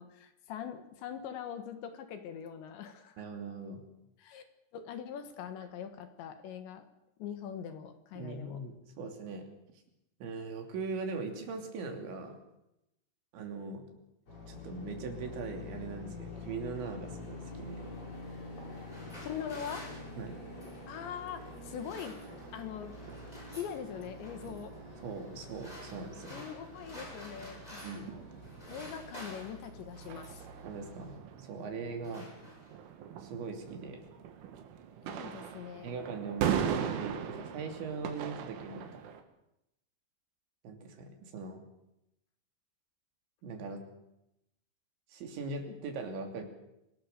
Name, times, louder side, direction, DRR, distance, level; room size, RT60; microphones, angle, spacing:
voice 1, 0.0-3.3 4.2-4.5 4.7-6.9 7.2-8.6 19.2-19.9 20.9-22.2 22.5-22.9 23.5-24.7 26.3-27.8 28.7-30.5 35.1-36.0 45.7-45.8, left 8 dB, 70° left, 8 dB, 3.6 m, -42 dB
voice 2, 3.2-3.8 8.2-9.5 10.2-12.4 13.3-13.9 14.5-17.8 20.2-20.3 25.0-26.4 27.8-28.2 30.6-32.3 33.2-34.1 35.8-39.0 40.6-41.6 43.4-43.8 45.1-46.4, right 4 dB, 70° right, 4 dB, 5.2 m, -40 dB
sound 1, 14.3-31.2, left 2 dB, 35° left, 7.4 m, -47 dB
sound 2, 18.7-20.9 21.6-22.6 22.9-23.8 24.2-24.6 25.3-28.2 28.4-30.5 31.3-31.5 31.8-32.9, equal, 10° left, 7.6 m, -50 dB
sound 3, 21.4-39.2, right 8 dB, 90° right, 4.4 m, -41 dB
26.0 x 19.0 x 6.8 m, 0.85 s
omnidirectional pair, 5.5 m